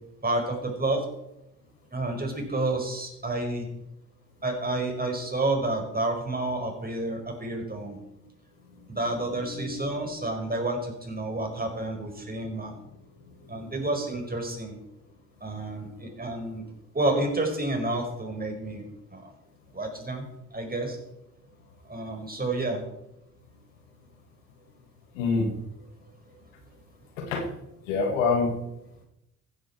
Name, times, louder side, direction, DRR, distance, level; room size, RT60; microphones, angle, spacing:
voice 1, 0.2-1.1 1.9-3.7 4.4-8.0 8.9-12.8 13.5-14.8 15.4-16.6 16.9-18.8 19.1-19.3 19.7-20.2 20.5-21.0 21.9-22.8 26.3-26.4, right 2 dB, 25° right, 3 dB, 5.3 m, -30 dB
voice 2, 9.5-9.9 13.5-13.6 25.1-25.5 27.2-27.5 27.9-28.5, left 4 dB, 90° left, 3 dB, 2.1 m, -26 dB
16.0 x 10.0 x 4.5 m, 0.86 s
hypercardioid pair, 45°, 38 cm